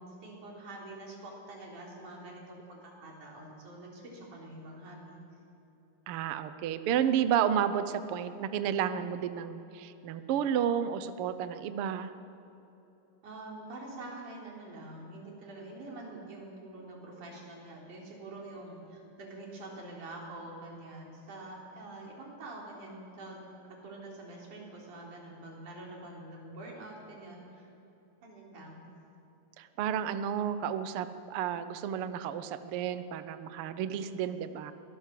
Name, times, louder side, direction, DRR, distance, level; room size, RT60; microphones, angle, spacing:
voice 1, 0.0-5.2 13.2-27.7 28.2-28.8, right 2 dB, 65° right, -2 dB, 5.3 m, -46 dB
voice 2, 6.1-12.1 29.6-34.7, right 9 dB, 85° right, 11 dB, 1.2 m, -31 dB
23.5 x 18.0 x 7.6 m, 3.0 s
omnidirectional pair, 3.8 m